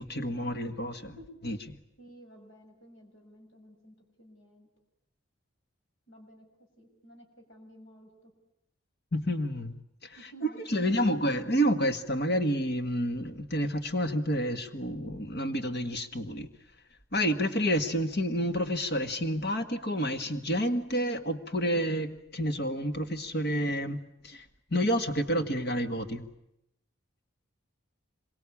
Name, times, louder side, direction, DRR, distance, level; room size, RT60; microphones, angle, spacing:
voice 1, 0.0-1.1 1.4-1.6 9.1-9.7 10.7-16.5 17.1-24.0 24.2-24.4 24.7-26.2, equal, 50° left, 7 dB, 1.8 m, -29 dB
voice 2, 2.0-4.7 6.1-6.5 6.8-8.3 10.1-11.4, equal, 65° left, 3 dB, 6.8 m, -53 dB
26.5 x 23.5 x 8.6 m, 0.82 s
head